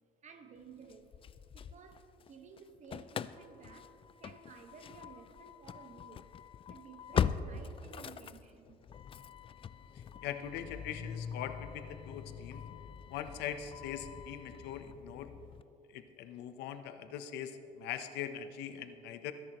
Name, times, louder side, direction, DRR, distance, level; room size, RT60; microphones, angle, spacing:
voice 1, 0.2-1.1 1.5-6.3 6.7-8.8 12.7-12.8, right 5 dB, 45° right, 1.3 m, -55 dB
Engine starting / Slam, 0.9-2.3 2.6-15.6, left 8 dB, 30° left, 0.4 m, -41 dB
voice 2, 9.9-12.6 13.1-15.3 15.9-19.3, left 9 dB, 90° left, 0.8 m, -42 dB
21.0 x 11.0 x 3.0 m
cardioid pair, 110°, 17 cm